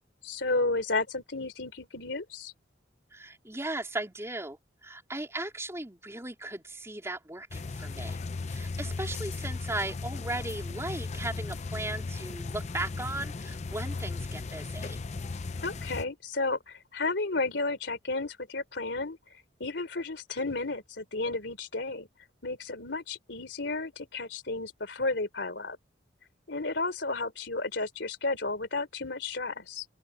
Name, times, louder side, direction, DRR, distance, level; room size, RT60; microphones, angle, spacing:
voice 1, 0.2-2.5 15.6-19.2 19.6-22.1 22.4-25.8 26.5-29.9, left 3 dB, 65° left, 3.5 m, -32 dB
voice 2, 3.1-8.2 8.5-15.0, right 2 dB, 15° right, 3.6 m, -37 dB
sound 1, 7.5-16.0, left 3 dB, 35° left, 0.5 m, -36 dB
open air
head